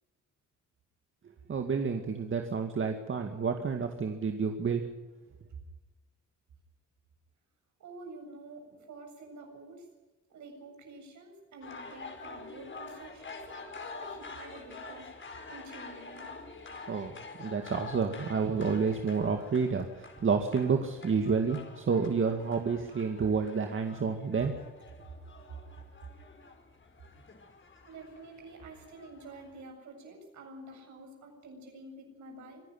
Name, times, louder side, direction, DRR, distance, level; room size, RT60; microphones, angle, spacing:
voice 1, 1.5-4.8 16.9-17.1 17.4-24.5, right 5 dB, 40° right, 4 dB, 2.2 m, -29 dB
voice 2, 7.8-9.9 10.3-15.1 15.5-16.4 25.8-25.9 27.8-32.6, right 2 dB, 70° right, 3 dB, 7.4 m, -49 dB
sound 1, 11.6-29.6, left 4 dB, 40° left, 4.7 m, -47 dB
24.5 x 11.0 x 9.4 m, 1.2 s
cardioid pair, 90°, 30 cm